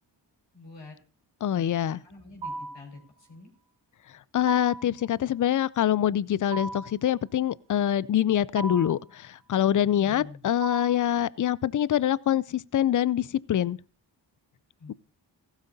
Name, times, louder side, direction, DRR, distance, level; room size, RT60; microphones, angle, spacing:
voice 1, 0.5-0.9 1.5-3.5 9.9-10.4 14.8-15.0, left 3 dB, 65° left, 5.1 m, -47 dB
voice 2, 1.4-2.0 4.3-13.8, left 11 dB, 45° left, 0.5 m, -25 dB
sound 1, 2.4-2.9 4.5-5.0 6.5-7.0 8.6-9.0 10.6-11.1, right 3 dB, 70° right, 1.6 m, -36 dB
15.5 x 12.5 x 2.8 m
cardioid pair, 50°, 46 cm